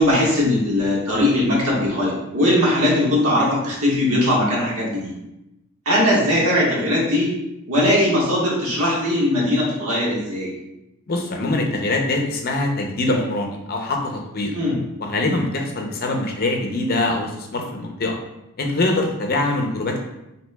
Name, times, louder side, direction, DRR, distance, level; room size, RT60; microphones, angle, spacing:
voice 1, 0.0-5.1 5.8-7.3 7.7-10.5 14.5-14.8, left 1 dB, 80° right, -4 dB, 1.4 m, -19 dB
voice 2, 11.1-14.5 15.0-18.2 18.6-20.0, left 2 dB, 45° left, 2 dB, 0.6 m, -23 dB
6.1 x 2.8 x 2.2 m, 0.90 s
head